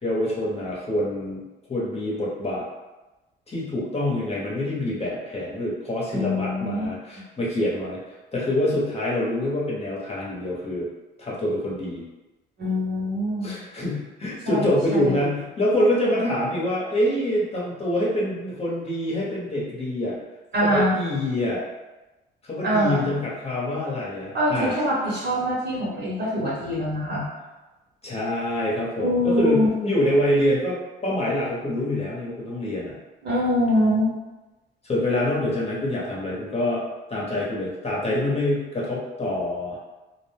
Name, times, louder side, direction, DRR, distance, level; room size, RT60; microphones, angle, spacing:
voice 1, 0.0-2.7 3.5-8.0 8.3-10.9 11.2-12.0 13.4-20.2 20.6-21.6 22.4-24.7 28.0-33.0 34.8-36.8 37.1-39.8, left 1 dB, 30° left, -5 dB, 0.9 m, -26 dB
voice 2, 6.1-6.8 12.6-13.6 14.5-15.2 20.5-21.0 22.6-23.1 24.3-27.3 29.0-29.7 33.2-34.1, equal, 60° right, -6 dB, 1.3 m, -24 dB
2.4 x 2.1 x 3.3 m, 1.1 s
cardioid pair, 90°, 20 cm